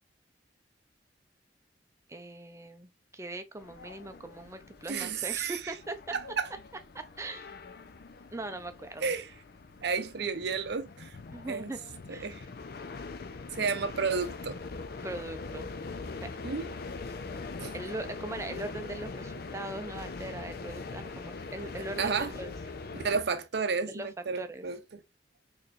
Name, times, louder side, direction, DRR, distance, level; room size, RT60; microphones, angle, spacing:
voice 1, 2.1-6.2 6.9-7.5 8.3-9.1 11.3-11.8 12.1-12.3 15.0-15.7 16.2-16.3 17.7-22.5 23.9-24.1 24.4-24.7, right 2 dB, 15° right, 0.6 m, -40 dB
sound 1, 3.6-23.2, left 3 dB, 55° left, 0.6 m, -42 dB
voice 2, 4.9-5.7 6.1-6.5 9.0-9.3 9.8-11.2 11.5-11.7 12.1-12.5 13.5-14.6 16.4-16.7 17.6-17.7 22.0-22.3 22.9-25.0, right 5 dB, 65° right, 0.6 m, -32 dB
4.2 x 3.2 x 2.5 m
head